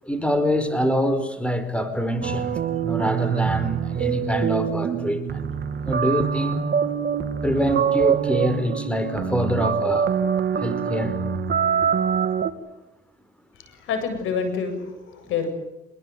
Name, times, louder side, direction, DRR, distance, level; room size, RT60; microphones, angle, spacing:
voice 1, 0.0-5.4 5.8-6.7 7.4-10.1 10.5-11.2, equal, 5° left, 10 dB, 5.0 m, -25 dB
sound 1, 2.2-12.5, right 7 dB, 55° right, 2.6 m, -24 dB
voice 2, 13.5-15.5, left 5 dB, 85° left, 8 dB, 7.7 m, -28 dB
27.0 x 22.0 x 9.5 m, 0.93 s
cardioid pair, 90°, 20 cm